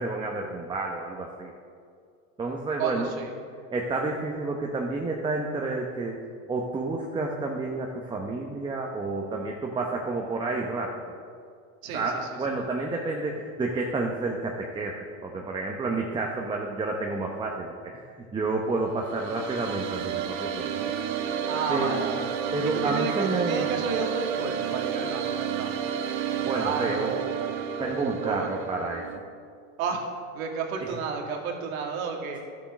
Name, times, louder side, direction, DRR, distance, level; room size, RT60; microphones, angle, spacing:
voice 1, 0.0-1.5 2.4-3.1 3.7-6.2 6.5-11.1 11.9-18.0 18.3-20.9 21.7-21.9 22.5-23.7 26.4-27.1 27.8-29.1 30.8-31.0, right 3 dB, 10° right, 0 dB, 0.8 m, -30 dB
voice 2, 2.8-3.3 11.8-12.0 21.5-22.3 22.6-25.9 26.3-27.4 28.0-28.5 29.8-30.1 30.4-32.4, right 5 dB, 80° right, 1 dB, 2.2 m, -32 dB
sound 1, 18.9-29.2, right 8 dB, 55° right, 1.1 m, -31 dB
12.0 x 7.4 x 6.0 m, 2.3 s
supercardioid pair, 125°, 41 cm